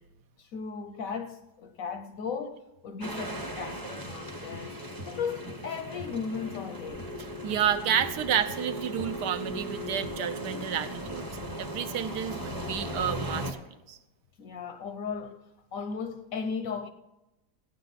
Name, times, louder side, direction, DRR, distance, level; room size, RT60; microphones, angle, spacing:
voice 1, 0.4-4.8 5.1-7.1 14.4-15.4 15.7-16.9, left 5 dB, 65° left, 0.9 m, -36 dB
sound 1, 3.0-13.5, equal, 15° right, 0.8 m, -37 dB
sound 2, 4.1-4.2 4.5-4.7 5.0-5.1 5.5-5.6 6.0-6.2 6.5-6.7 7.0-7.1 7.5-7.6 8.0-8.1 8.5-8.6 9.0-9.1 9.5-9.6 10.0-10.2 10.5-10.7 11.1-11.2, right 1 dB, 45° right, 0.9 m, -44 dB
voice 2, 7.4-11.3 11.6-13.6 13.9-14.0, right 9 dB, 75° right, 1.2 m, -30 dB
15.0 x 9.4 x 4.0 m
omnidirectional pair, 1.9 m